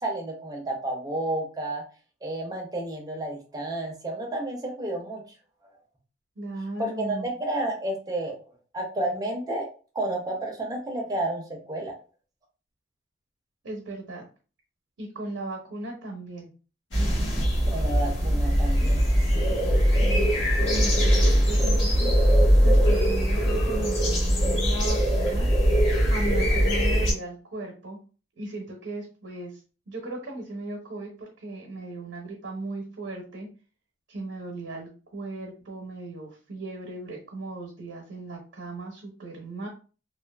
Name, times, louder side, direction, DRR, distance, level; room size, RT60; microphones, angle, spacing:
voice 1, 0.0-1.8 2.2-5.2 6.8-8.4 8.7-9.7 9.9-11.9 17.7-19.1 19.4-19.5, right 1 dB, 20° right, 0 dB, 0.6 m, -31 dB
voice 2, 6.4-7.3 13.6-14.3 15.0-16.5 20.0-20.3 20.6-22.3 22.6-25.5 26.1-28.0 28.4-29.6 29.9-33.5 34.1-39.7, right 2 dB, 80° right, 0 dB, 0.7 m, -37 dB
sound 1, 16.9-27.1, equal, 80° left, 1.2 m, -21 dB
2.5 x 2.4 x 2.2 m, 0.36 s
head